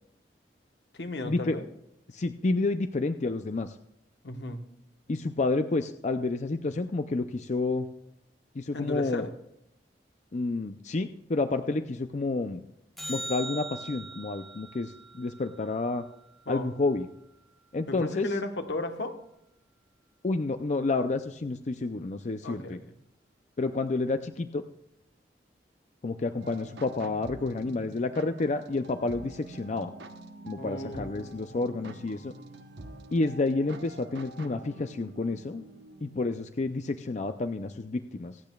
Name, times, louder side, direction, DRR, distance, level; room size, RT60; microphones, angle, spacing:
voice 1, 0.9-1.6 4.2-4.6 8.7-9.3 16.5-16.7 17.9-19.2 22.4-22.8 30.6-31.3, left 2 dB, 75° left, 7 dB, 1.2 m, -35 dB
voice 2, 2.1-3.8 5.1-7.9 8.5-9.3 10.3-12.6 13.1-16.0 16.5-17.1 17.7-18.3 20.2-22.8 23.6-24.6 26.0-29.9 30.4-32.3 33.1-35.6 36.0-38.4, left 3 dB, 40° left, 9 dB, 0.5 m, -30 dB
sound 1, 13.0-17.4 24.0-24.1, right 2 dB, ahead, 1.0 m, -42 dB
sound 2, 26.4-36.3, right 2 dB, 80° right, 1.0 m, -46 dB
25.5 x 8.6 x 2.3 m, 0.82 s
head